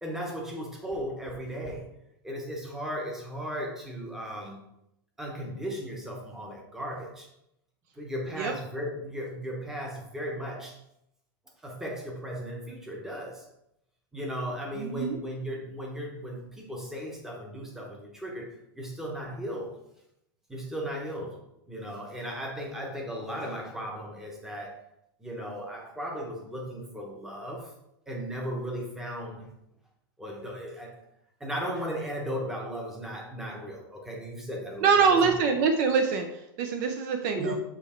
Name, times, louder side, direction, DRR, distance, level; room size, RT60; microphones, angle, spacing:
voice 1, 0.0-1.9 2.2-4.6 5.2-7.3 8.0-10.8 11.6-13.4 14.1-19.8 20.5-21.4 21.7-24.8 25.2-27.7 28.1-29.5 30.2-31.0 31.4-35.2 37.3-37.6, equal, 5° right, -1 dB, 0.9 m, -36 dB
voice 2, 14.8-15.2 34.8-37.6, right 5 dB, 45° right, 5 dB, 0.6 m, -24 dB
7.0 x 3.2 x 4.4 m, 0.81 s
supercardioid pair, 170°, 12 cm